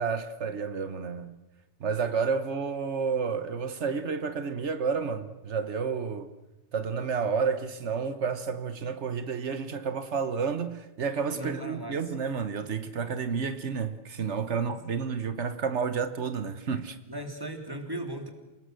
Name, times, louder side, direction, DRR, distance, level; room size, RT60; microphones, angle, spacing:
voice 1, 0.0-1.4 1.8-6.3 6.7-17.0, right 5 dB, 85° right, 1.5 m, -30 dB
voice 2, 11.3-12.0 17.1-18.3, right 1 dB, 20° right, 3.5 m, -37 dB
28.0 x 19.0 x 7.7 m
omnidirectional pair, 1.1 m